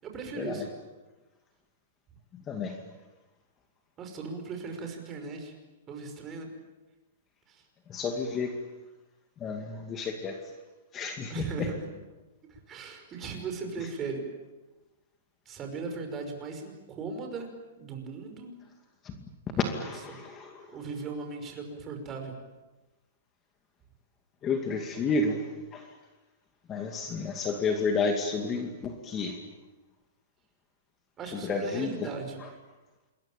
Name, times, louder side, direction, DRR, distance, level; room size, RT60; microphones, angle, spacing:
voice 1, 0.0-0.7 4.0-5.5 5.9-6.5 7.5-7.6 11.3-11.8 12.5-14.2 15.5-17.5 17.8-18.5 19.5-20.2 20.7-22.4 31.2-32.4, right 4 dB, 20° right, 4 dB, 5.7 m, -38 dB
voice 2, 2.3-2.8 7.9-8.5 9.4-10.4 10.9-11.7 19.0-19.1 19.6-20.7 24.4-25.9 26.7-29.4 31.3-32.1, left 4 dB, 20° left, 5 dB, 2.4 m, -31 dB
27.5 x 22.0 x 9.1 m, 1.1 s
hypercardioid pair, 150°, 0 cm